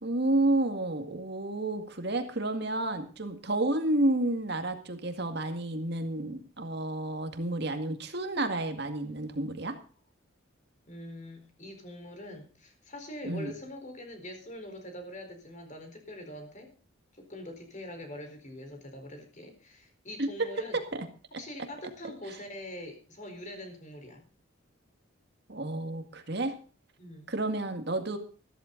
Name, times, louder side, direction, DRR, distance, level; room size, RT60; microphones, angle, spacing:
voice 1, 0.0-9.8 13.2-13.5 20.2-20.3 20.7-21.1 21.3-21.4 25.5-26.6 27.3-28.2, right 2 dB, 55° right, 6 dB, 2.0 m, -30 dB
voice 2, 10.9-16.7 17.1-20.8 21.4-24.3 27.0-27.3, left 1 dB, 35° left, 5 dB, 4.3 m, -44 dB
14.5 x 13.5 x 3.9 m, 0.38 s
head